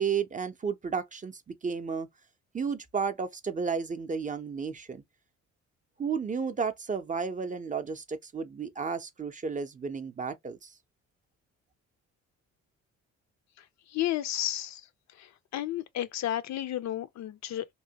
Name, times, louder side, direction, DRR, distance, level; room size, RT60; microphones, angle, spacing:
voice 1, 0.0-2.1 2.5-5.0 6.0-10.7, right 6 dB, 25° right, 0.5 m, -32 dB
voice 2, 13.9-14.8 15.2-15.3 15.5-17.7, left 13 dB, 65° left, 0.5 m, -32 dB
2.9 x 2.1 x 2.7 m
cardioid pair, 90°, 30 cm